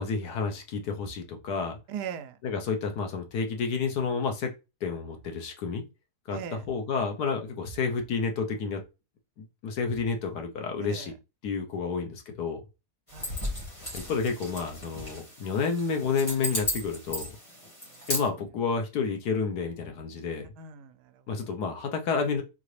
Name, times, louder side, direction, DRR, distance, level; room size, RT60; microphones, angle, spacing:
voice 1, 0.0-1.8 2.4-4.5 4.8-5.8 6.3-6.4 6.7-8.8 9.4-11.1 11.4-12.6 13.9-17.3 18.1-20.5 21.3-22.4, left 5 dB, 80° left, 1.5 m, -30 dB
voice 2, 1.9-2.4 6.3-6.7 10.9-11.1 13.1-13.4 17.9-18.1 20.6-21.2, right 8 dB, 85° right, 1.2 m, -39 dB
sound 1, 13.1-18.3, equal, 20° left, 1.9 m, -35 dB
4.0 x 3.9 x 3.2 m
omnidirectional pair, 1.7 m